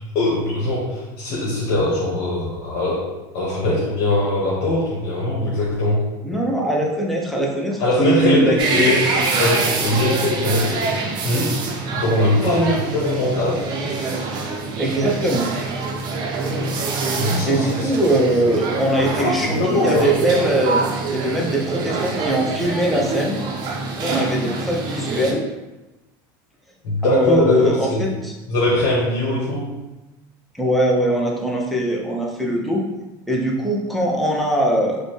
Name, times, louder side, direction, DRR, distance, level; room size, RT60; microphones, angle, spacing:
voice 1, 0.1-3.1 3.3-6.1 7.8-11.6 11.9-13.7 17.1-17.9 19.2-20.1 26.8-28.1 28.5-29.7, left 1 dB, 60° left, -7 dB, 1.2 m, -21 dB
voice 2, 6.2-8.8 14.8-15.5 17.4-20.8 21.1-23.4 24.0-25.4 27.0-28.3 30.6-32.8 33.3-35.0, right 1 dB, ahead, -2 dB, 0.6 m, -21 dB
sound 1, 8.6-25.3, right 3 dB, 40° right, 0.6 m, -25 dB
5.0 x 2.2 x 3.1 m, 1.1 s
cardioid pair, 150°, 11 cm